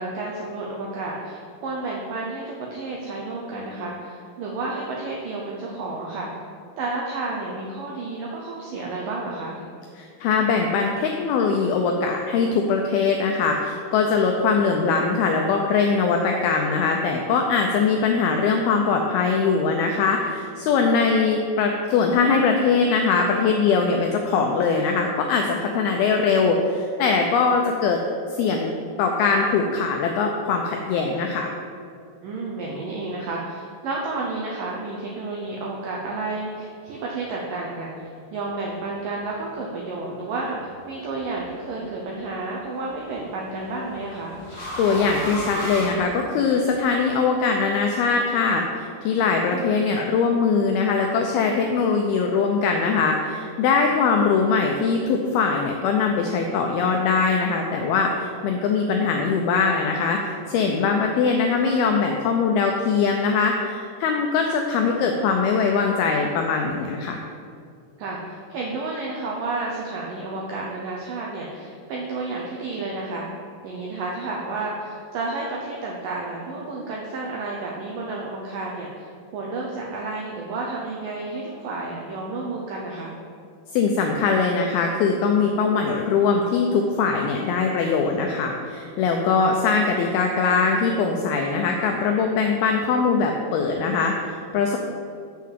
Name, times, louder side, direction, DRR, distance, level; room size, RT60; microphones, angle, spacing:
voice 1, 0.0-6.4 6.8-9.6 20.8-21.0 25.7-25.8 32.2-44.4 49.5-49.6 68.0-73.3 73.6-83.2 89.3-89.4, right 3 dB, 80° right, -2 dB, 1.9 m, -31 dB
voice 2, 10.0-28.0 28.3-28.7 29.0-31.5 44.8-67.2 83.7-94.8, left 5 dB, 90° left, 2 dB, 2.2 m, -21 dB
sound 1, 40.8-41.3 42.8-46.7, left 1 dB, 60° left, 0.6 m, -34 dB
7.3 x 5.7 x 7.4 m, 2.4 s
omnidirectional pair, 5.1 m